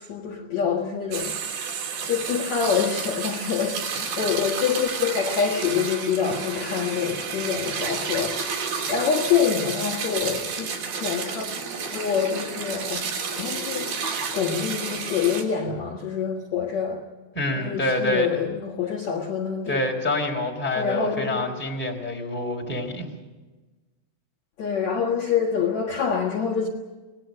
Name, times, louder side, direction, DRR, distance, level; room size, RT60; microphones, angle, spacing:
voice 1, 0.0-1.4 2.1-11.5 11.9-13.0 13.4-13.9 14.3-17.0 17.6-19.8 20.8-21.5 24.6-26.7, left 7 dB, 55° left, -2 dB, 2.5 m, -26 dB
sound 1, 1.1-15.4, right 5 dB, 85° right, 5.4 m, -31 dB
voice 2, 17.3-18.3 19.7-23.1, left 1 dB, 5° left, 1 dB, 2.9 m, -26 dB
26.0 x 19.5 x 6.5 m, 1.2 s
omnidirectional pair, 4.7 m